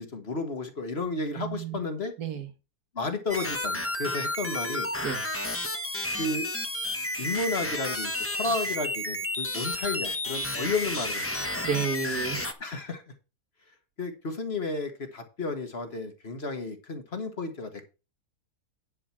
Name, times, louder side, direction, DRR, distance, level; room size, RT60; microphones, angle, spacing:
voice 1, 0.0-2.1 2.9-4.9 6.2-6.5 7.2-11.5 12.6-13.0 14.0-17.9, left 3 dB, 45° left, 1.7 m, -32 dB
voice 2, 1.4-1.8 2.2-2.5 5.0-5.2 11.6-12.4, right 6 dB, 85° right, 2.0 m, -31 dB
sound 1, 3.3-12.5, left 1 dB, 10° left, 0.8 m, -31 dB
10.5 x 5.0 x 5.9 m
omnidirectional pair, 1.6 m